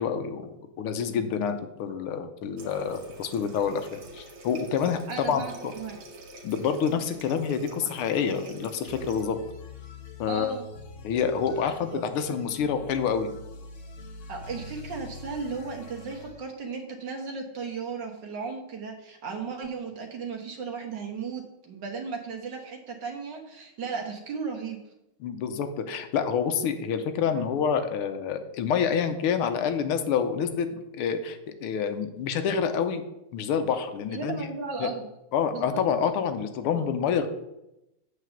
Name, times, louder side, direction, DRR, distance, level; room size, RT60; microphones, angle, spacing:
voice 1, 0.0-5.7 6.4-9.4 10.2-10.6 11.0-13.3 25.2-30.7 31.0-33.0 33.3-34.5 34.8-34.9 35.3-37.3, left 7 dB, 80° left, 8 dB, 1.6 m, -27 dB
Water tap faucet, 2.6-9.3, right 2 dB, 75° right, 2.2 m, -46 dB
voice 2, 5.1-6.0 10.3-10.6 11.9-12.0 14.3-24.8 27.3-27.4 34.1-35.0 35.5-35.8, right 5 dB, 60° right, 1 dB, 1.7 m, -35 dB
sound 1, 8.9-16.4, left 2 dB, 50° left, 0.9 m, -44 dB
8.3 x 4.1 x 7.0 m, 0.90 s
omnidirectional pair, 2.4 m